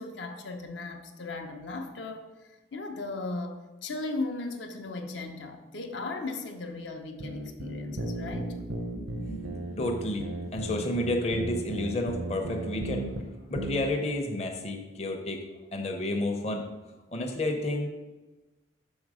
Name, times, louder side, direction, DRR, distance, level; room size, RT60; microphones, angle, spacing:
voice 1, 0.0-2.3 2.7-8.5, left 3 dB, 70° left, 4 dB, 0.7 m, -37 dB
sound 1, 7.2-13.2 13.6-13.8, right 2 dB, 70° right, 0.6 m, -35 dB
voice 2, 8.9-13.1 13.5-15.4 15.7-16.6 17.1-17.9, left 1 dB, 35° left, 2 dB, 0.6 m, -31 dB
6.3 x 4.0 x 4.9 m, 1.1 s
head